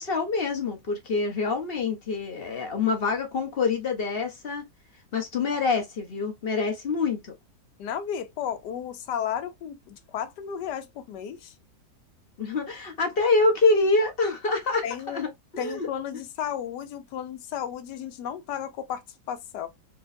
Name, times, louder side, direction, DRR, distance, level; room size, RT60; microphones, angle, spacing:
voice 1, 0.0-4.7 5.1-7.3 12.4-15.9, left 3 dB, 40° left, 1.1 m, -26 dB
voice 2, 7.8-11.5 14.8-15.2 15.6-19.7, left 9 dB, 85° left, 1.3 m, -33 dB
4.5 x 3.0 x 2.6 m
omnidirectional pair, 1.8 m